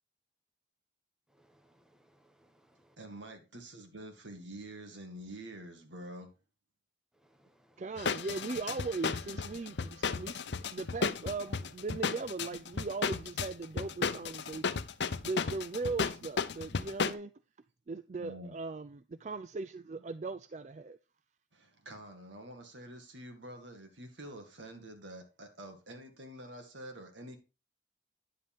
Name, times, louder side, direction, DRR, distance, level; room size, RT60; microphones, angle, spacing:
voice 1, 1.4-3.0 7.2-7.8, right 1 dB, 5° right, 1.1 m, -67 dB
voice 2, 3.0-6.3 18.2-18.6 21.5-27.4, right 1 dB, 85° right, 2.1 m, -47 dB
voice 3, 7.8-10.4 10.7-14.8 15.2-17.3 17.9-21.0, right 3 dB, 40° right, 0.4 m, -39 dB
sound 1, 8.0-17.1, left 5 dB, 70° left, 0.6 m, -34 dB
9.9 x 7.6 x 3.7 m
head